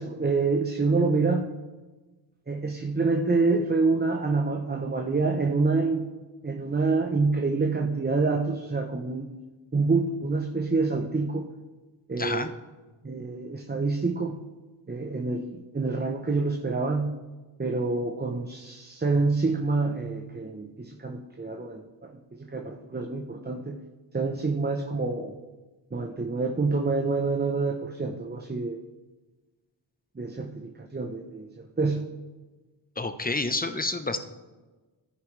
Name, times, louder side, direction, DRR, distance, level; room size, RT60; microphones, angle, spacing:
voice 1, 0.0-1.5 2.5-6.1 6.4-9.3 9.7-11.5 12.1-12.5 13.0-14.4 14.9-17.2 17.6-23.8 24.1-25.3 25.9-28.8 30.2-32.0, right 3 dB, 20° right, 3 dB, 0.9 m, -27 dB
voice 2, 12.2-12.5 33.0-34.2, left 3 dB, 20° left, 9 dB, 1.0 m, -29 dB
14.0 x 10.0 x 3.4 m, 1.2 s
cardioid pair, 65°, 46 cm